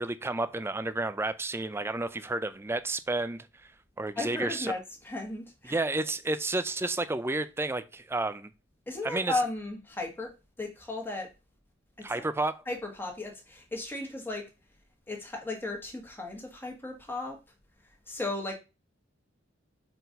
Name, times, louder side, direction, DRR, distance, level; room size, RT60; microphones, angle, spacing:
voice 1, 0.0-3.7 4.0-4.7 5.7-8.5 9.0-9.3 12.0-12.6, right 2 dB, 10° right, 0.4 m, -31 dB
voice 2, 4.1-5.8 8.9-11.3 12.0-12.2 12.7-14.5 15.1-17.4 18.1-18.5, left 2 dB, 10° left, 1.6 m, -35 dB
4.5 x 4.0 x 5.1 m
head